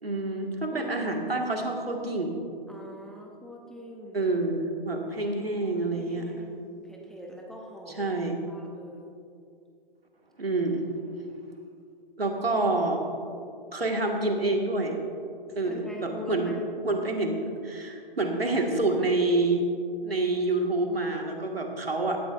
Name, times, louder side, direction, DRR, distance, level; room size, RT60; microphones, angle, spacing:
voice 1, 0.0-2.4 4.1-6.3 8.0-8.4 10.4-10.8 12.2-13.0 13.7-15.0 15.6-16.5 16.8-19.7 20.0-22.2, right 2 dB, 85° right, 2 dB, 2.0 m, -27 dB
voice 2, 0.7-1.0 2.7-4.2 5.9-8.2 8.5-9.2 15.6-16.5, left 1 dB, ahead, -1 dB, 0.7 m, -43 dB
17.0 x 12.0 x 2.6 m, 2.4 s
figure-of-eight pair, 125°, 29 cm